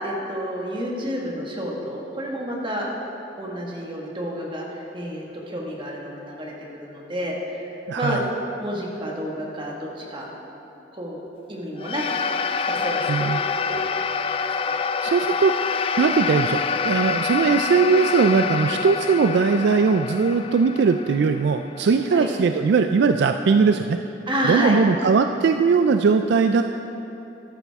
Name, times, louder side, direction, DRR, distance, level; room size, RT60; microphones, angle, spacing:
voice 1, 0.0-2.9 3.4-7.7 8.0-8.2 8.6-10.3 10.9-11.2 11.5-12.3 12.5-13.2 13.7-13.9 14.7-14.8 22.1-22.3 24.3-24.8, equal, 25° right, -2 dB, 1.6 m, -29 dB
voice 2, 7.9-8.2 13.1-13.4 15.0-24.0 24.5-26.6, right 5 dB, 60° right, 7 dB, 0.3 m, -20 dB
sound 1, 11.8-22.3, left 5 dB, 30° left, 0.3 m, -26 dB
13.0 x 11.5 x 3.5 m, 3.0 s
head